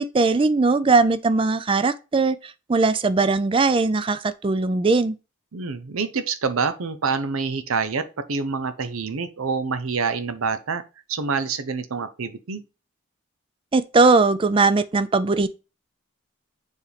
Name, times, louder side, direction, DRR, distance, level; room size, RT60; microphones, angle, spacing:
voice 1, 0.0-5.1 13.7-15.5, right 3 dB, 25° right, 0.4 m, -20 dB
voice 2, 5.5-10.8 11.1-12.6, right 5 dB, 85° right, 0.7 m, -26 dB
7.1 x 4.3 x 3.3 m
head